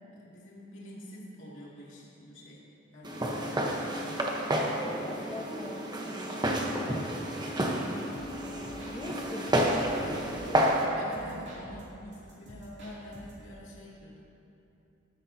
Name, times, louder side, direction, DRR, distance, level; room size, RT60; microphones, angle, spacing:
voice 1, 0.1-2.6 2.9-4.4 10.9-14.2, equal, 65° left, -6 dB, 2.6 m, -47 dB
Walk footsteps, 3.0-10.8, right 1 dB, 20° right, 1.0 m, -30 dB
voice 2, 4.8-7.7 8.9-11.4, equal, 15° left, -1 dB, 1.2 m, -43 dB
sound 1, 8.1-10.8 11.1-13.5, equal, 55° right, 3.0 m, -49 dB
15.0 x 12.5 x 2.9 m, 3.0 s
head